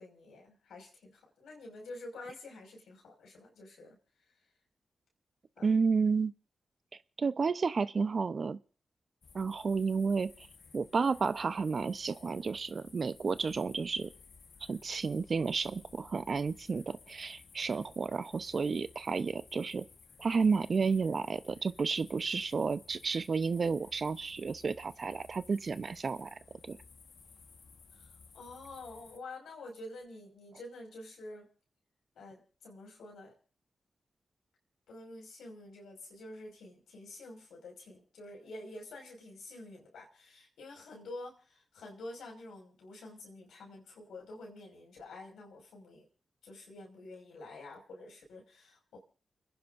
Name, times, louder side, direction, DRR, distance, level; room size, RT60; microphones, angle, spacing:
voice 1, 0.0-4.5 5.6-5.8 27.9-31.5 32.1-33.3 34.9-46.1 46.4-49.0, left 2 dB, 85° left, 5.4 m, -48 dB
voice 2, 5.6-6.3 7.2-8.6 9.3-10.5 10.7-14.1 14.7-19.9 20.2-26.8, right 5 dB, 60° right, 0.8 m, -31 dB
sound 1, 9.2-29.2, left 5 dB, 70° left, 1.4 m, -57 dB
30.0 x 10.5 x 2.6 m
supercardioid pair, 40°, 0 cm